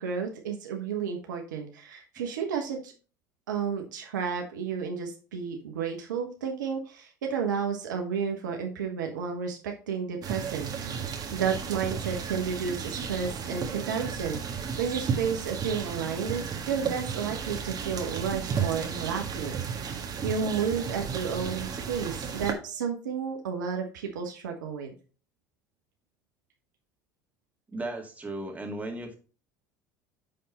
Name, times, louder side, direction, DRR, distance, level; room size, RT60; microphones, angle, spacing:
voice 1, 0.0-2.9 3.5-10.9 11.3-24.9, right 6 dB, 80° right, 3 dB, 1.3 m, -32 dB
sound 1, 10.2-22.5, right 6 dB, 40° right, 1.6 m, -34 dB
voice 2, 27.7-29.1, right 2 dB, 15° right, 2 dB, 2.1 m, -35 dB
9.2 x 3.9 x 4.1 m, 0.37 s
hypercardioid pair, 70°, 10 cm